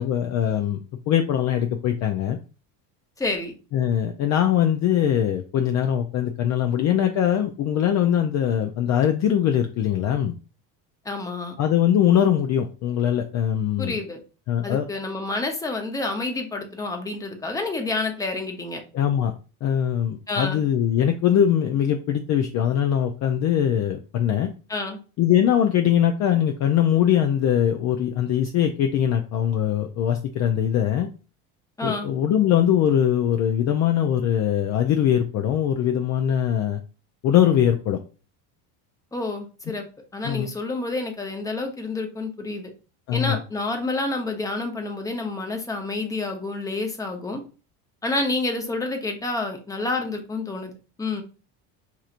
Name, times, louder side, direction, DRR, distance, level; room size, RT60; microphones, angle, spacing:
voice 1, 0.0-2.4 3.7-10.3 11.6-14.0 14.5-14.9 18.9-19.3 19.6-24.5 25.2-31.1 31.8-36.8 37.2-38.0 40.2-40.5 43.1-43.4, left 10 dB, 40° left, 5 dB, 0.4 m, -22 dB
voice 2, 3.2-3.5 11.0-11.6 13.8-14.2 14.6-18.8 20.3-20.6 24.7-25.0 31.8-32.1 39.1-39.8 40.1-42.7 43.1-47.4 48.0-50.7 51.0-51.2, left 2 dB, 10° left, 4 dB, 0.7 m, -28 dB
4.7 x 2.9 x 2.4 m, 0.35 s
supercardioid pair, 115°, 44 cm